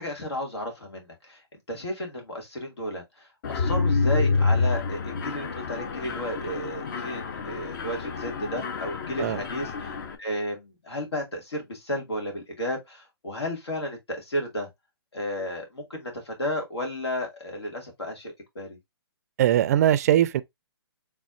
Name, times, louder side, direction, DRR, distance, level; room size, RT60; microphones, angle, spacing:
voice 1, 0.0-14.7 15.1-18.8, equal, 85° left, 2.1 m, -33 dB
Mechanisms, 3.4-10.2, left 4 dB, 50° left, 0.9 m, -28 dB
voice 2, 19.4-20.4, right 11 dB, 40° right, 0.3 m, -20 dB
4.1 x 3.4 x 2.5 m
hypercardioid pair, 145°, 13 cm